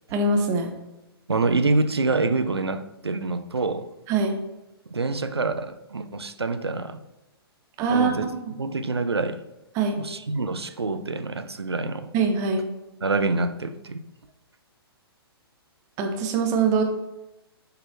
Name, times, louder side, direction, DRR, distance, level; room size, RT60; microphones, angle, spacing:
voice 1, 0.1-0.7 4.1-4.3 7.8-8.1 9.7-10.0 12.1-12.6 16.0-16.8, right 4 dB, 25° right, 0.9 m, -22 dB
voice 2, 1.3-3.9 4.9-7.0 7.9-8.3 8.6-9.4 10.0-12.1 13.0-14.0, right 3 dB, 80° right, 0.6 m, -26 dB
6.8 x 4.1 x 4.3 m
figure-of-eight pair, 120°, 13 cm